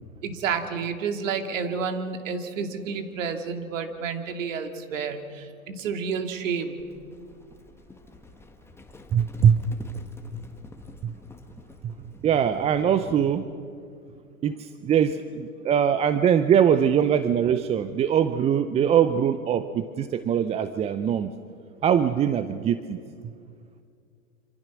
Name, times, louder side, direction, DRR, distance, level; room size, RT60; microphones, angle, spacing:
voice 1, 0.2-6.8, right 6 dB, 65° right, 7 dB, 2.6 m, -30 dB
Livestock farm animals working animals, 6.8-13.5, left 2 dB, 5° left, 1.7 m, -48 dB
voice 2, 9.1-9.6 11.0-11.1 11.8-11.9 12.2-13.5 14.4-21.3 21.8-23.0, right 8 dB, 15° right, 12 dB, 0.5 m, -22 dB
26.5 x 26.0 x 6.2 m, 2.3 s
hypercardioid pair, 110°, 42 cm